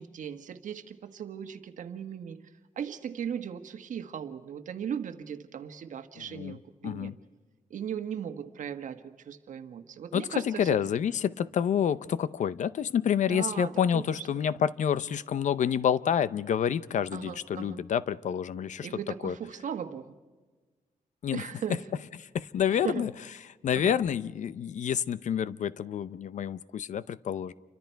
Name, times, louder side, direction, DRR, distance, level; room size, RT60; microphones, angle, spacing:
voice 1, 0.0-2.4 2.8-7.1 7.7-10.8 13.3-14.2 17.1-17.8 18.8-20.1 21.3-21.8 22.7-23.1 23.7-24.0, right 8 dB, 65° right, 1.5 m, -37 dB
voice 2, 6.2-6.6 6.8-7.1 10.1-18.9 19.2-19.4 21.2-21.5 22.3-23.1 23.6-27.5, left 8 dB, 60° left, 0.7 m, -28 dB
29.0 x 24.5 x 4.6 m
wide cardioid pair, 160°, 14 cm